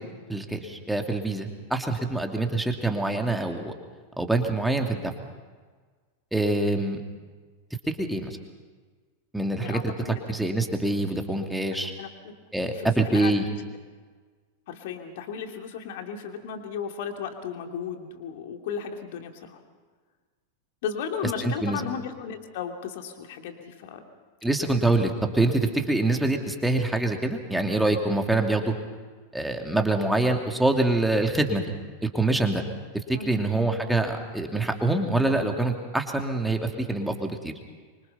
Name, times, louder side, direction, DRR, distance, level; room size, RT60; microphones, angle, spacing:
voice 1, 0.3-3.7 4.2-5.1 6.3-7.0 8.0-8.4 9.3-9.9 10.3-11.9 12.5-13.4 21.4-21.8 24.4-28.7 29.3-31.6 32.0-32.6 33.1-37.5, right 2 dB, 5° right, 3 dB, 2.6 m, -25 dB
voice 2, 9.6-10.2 11.8-12.3 12.6-13.3 14.7-19.6 20.8-24.0 33.1-33.4, left 7 dB, 50° left, 4 dB, 2.7 m, -35 dB
25.5 x 24.5 x 5.8 m, 1.5 s
figure-of-eight pair, 90°, 0 cm